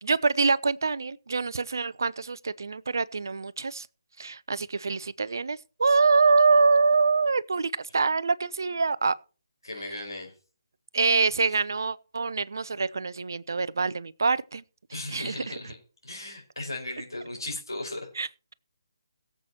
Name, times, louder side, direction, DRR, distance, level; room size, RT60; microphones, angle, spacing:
voice 1, 0.0-3.9 4.2-9.1 10.9-14.6 15.1-15.5 18.2-18.5, right 4 dB, 60° right, 0.6 m, -25 dB
voice 2, 9.6-10.3 14.9-15.8 16.0-18.1, left 2 dB, 80° left, 4.8 m, -36 dB
22.0 x 7.7 x 2.9 m
figure-of-eight pair, 145°, 2 cm